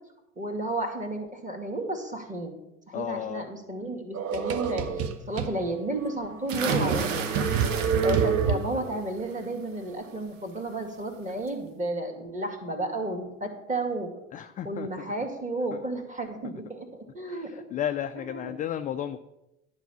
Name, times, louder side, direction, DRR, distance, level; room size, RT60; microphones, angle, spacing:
voice 1, 0.4-2.6 2.9-7.3 8.0-14.1 14.4-16.9 17.1-17.6 18.1-18.5, right 2 dB, 20° right, 3 dB, 2.0 m, -32 dB
voice 2, 2.9-3.5 14.3-14.9 17.3-19.2, left 10 dB, 20° left, 9 dB, 0.3 m, -33 dB
sound 1, 4.1-5.5 6.0-6.1 6.5-9.0, right 6 dB, 35° right, 1.0 m, -27 dB
sound 2, 6.5-8.6 9.0-9.4 10.8-10.9 11.3-11.4, right 6 dB, 75° right, 1.0 m, -32 dB
11.0 x 4.8 x 6.9 m, 0.92 s
figure-of-eight pair, 65°, 39 cm